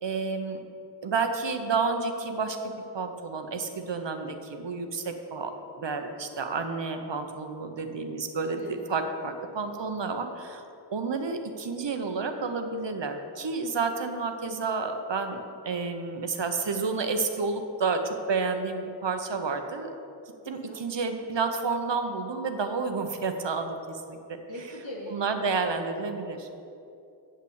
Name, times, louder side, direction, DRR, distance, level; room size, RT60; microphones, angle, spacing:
voice 1, 0.0-0.6 1.0-5.5 5.8-10.6 10.9-19.9 20.5-24.4 25.1-26.5, right 4 dB, 70° right, 6 dB, 1.0 m, -30 dB
voice 2, 20.4-20.8 24.5-25.2, left 1 dB, 90° left, -5 dB, 2.5 m, -41 dB
8.6 x 5.7 x 8.1 m, 2.6 s
wide cardioid pair, 75°, 44 cm